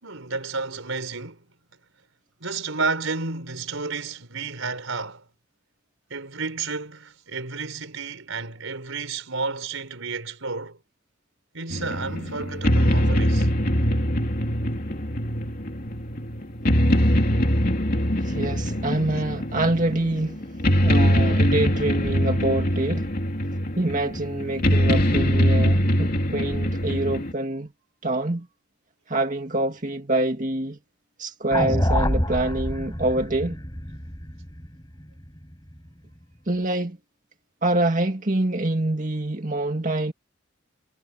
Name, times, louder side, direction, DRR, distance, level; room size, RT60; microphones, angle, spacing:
voice 1, 0.0-1.4 2.4-5.2 6.1-10.8 11.5-13.5 31.7-31.8, right 4 dB, 80° right, 4.2 m, -31 dB
sound 1, 11.7-27.3, equal, 45° left, 3.2 m, -23 dB
voice 2, 18.2-20.4 20.8-23.1 23.8-27.7 28.0-28.5 29.1-30.8 31.2-33.6 36.5-37.0 37.6-40.1, right 2 dB, 40° right, 2.1 m, -26 dB
sound 2, 31.5-35.8, left 1 dB, 20° left, 6.0 m, -27 dB
head